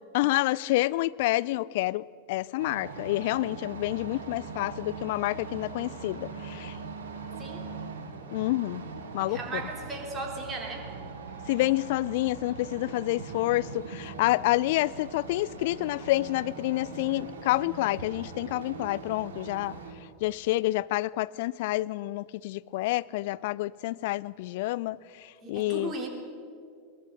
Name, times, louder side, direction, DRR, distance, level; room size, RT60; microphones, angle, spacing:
voice 1, 0.1-6.8 8.3-8.8 9.1-9.6 11.5-19.7 20.2-25.9, left 18 dB, 50° left, 0.4 m, -28 dB
sound 1, 2.6-19.9, right 4 dB, 60° right, 2.2 m, -41 dB
voice 2, 9.3-10.9 25.4-26.1, right 3 dB, 20° right, 3.6 m, -36 dB
22.0 x 19.0 x 6.3 m
figure-of-eight pair, 90°, 0 cm